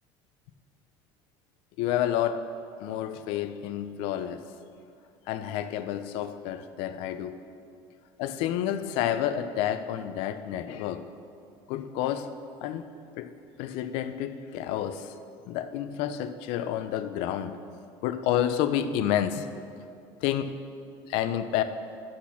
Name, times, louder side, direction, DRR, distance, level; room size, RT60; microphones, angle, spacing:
voice 1, 1.8-2.4 2.8-4.4 5.3-7.4 8.2-11.0 11.7-12.3 12.6-12.8 13.2-13.3 13.6-15.1 15.5-17.6 18.0-19.5 20.2-20.5 21.1-21.6, left 11 dB, 65° left, 10 dB, 0.4 m, -29 dB
10.0 x 4.3 x 5.8 m, 2.4 s
cardioid pair, 180°, 10 cm